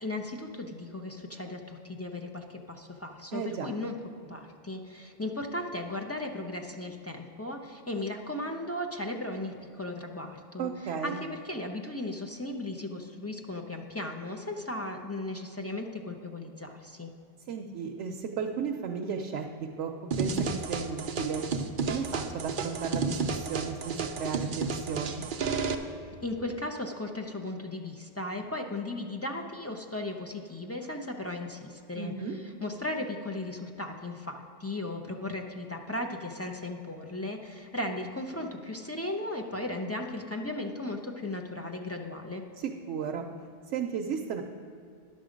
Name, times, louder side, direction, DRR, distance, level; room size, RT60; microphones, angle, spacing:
voice 1, 0.0-3.9 4.3-17.1 26.2-42.4, left 2 dB, 20° left, 2 dB, 0.4 m, -36 dB
voice 2, 3.3-3.7 10.6-11.2 17.5-19.5 19.8-19.9 20.2-21.4 21.9-25.2 32.0-32.4 42.6-43.2 43.7-44.4, right 6 dB, 85° right, 2 dB, 0.9 m, -34 dB
sound 1, 20.1-25.7, right 5 dB, 55° right, 0.7 m, -31 dB
10.5 x 6.8 x 5.1 m, 2.5 s
omnidirectional pair, 1.2 m